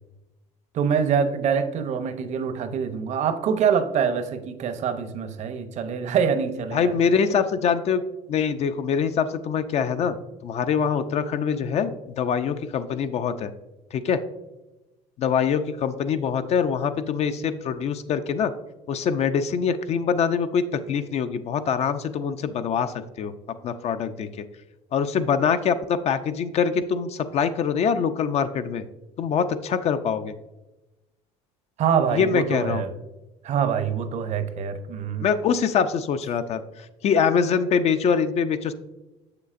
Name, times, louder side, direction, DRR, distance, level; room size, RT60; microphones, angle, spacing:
voice 1, 0.7-7.0 31.8-32.9 33.4-35.3, right 7 dB, 50° right, 10 dB, 0.7 m, -25 dB
voice 2, 6.7-8.0 8.3-10.2 10.4-13.5 13.9-14.2 15.2-18.5 18.9-23.3 23.6-24.3 24.9-28.8 29.2-30.3 32.1-32.8 35.2-36.6 37.0-38.7, left 6 dB, 45° left, 10 dB, 0.4 m, -24 dB
6.7 x 6.6 x 2.5 m, 1.0 s
supercardioid pair, 95°, 15 cm